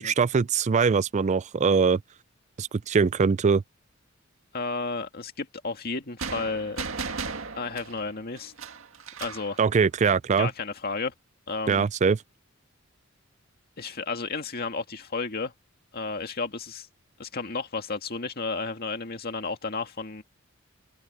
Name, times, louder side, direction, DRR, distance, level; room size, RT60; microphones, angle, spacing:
voice 1, 0.0-2.0 2.6-3.6 9.6-10.5 11.7-12.2, right 5 dB, 35° right, 0.4 m, -22 dB
voice 2, 4.5-6.8 7.5-8.5 9.2-9.6 10.4-11.1 11.5-11.9 13.8-15.5 15.9-16.9 17.2-20.2, left 4 dB, 50° left, 2.0 m, -32 dB
sound 1, 6.2-9.5, right 4 dB, 75° right, 1.9 m, -36 dB
open air
head